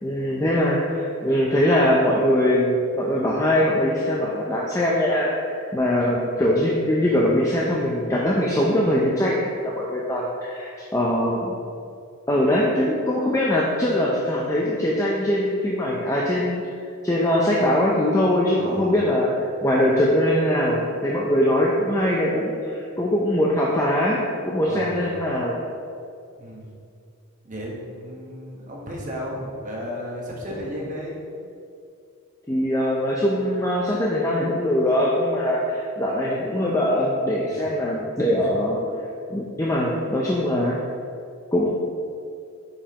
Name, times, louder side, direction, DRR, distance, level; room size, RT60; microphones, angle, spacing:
voice 1, 0.0-11.6 12.3-16.7 17.0-19.3 19.6-24.2 24.5-25.6 32.5-38.8 39.3-40.8 41.5-41.7, left 1 dB, 15° left, -4 dB, 0.5 m, -22 dB
voice 2, 18.6-18.9 24.7-25.1 26.4-26.7 27.4-31.2 37.5-37.8 38.3-38.5, equal, 35° right, -3 dB, 1.2 m, -34 dB
8.6 x 5.2 x 2.9 m, 2.5 s
head